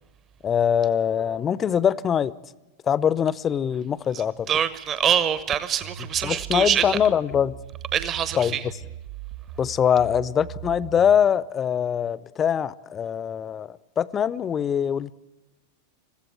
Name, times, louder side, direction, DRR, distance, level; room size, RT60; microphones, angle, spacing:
voice 1, 0.4-2.3 2.9-4.5 6.2-7.6 8.3-8.6 9.6-15.1, left 8 dB, 25° left, 0.6 m, -23 dB
voice 2, 4.1-7.0 7.9-8.6, right 9 dB, 30° right, 1.0 m, -25 dB
sound 1, 5.8-11.2, right 10 dB, 50° right, 1.7 m, -39 dB
21.5 x 15.5 x 9.6 m
figure-of-eight pair, 90°, 0 cm